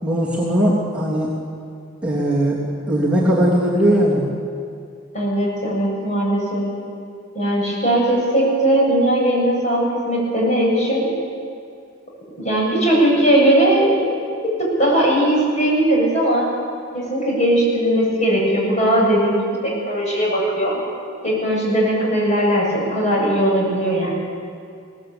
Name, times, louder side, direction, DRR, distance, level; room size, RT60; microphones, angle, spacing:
voice 1, 0.0-1.3 2.0-2.6 2.9-4.2, equal, 5° right, -8 dB, 3.2 m, -18 dB
voice 2, 5.1-6.7 7.3-11.1 12.4-14.1 14.8-16.5 16.9-20.8 21.2-24.1, right 1 dB, 35° left, -3 dB, 8.0 m, -18 dB
22.0 x 18.5 x 8.8 m, 2.4 s
head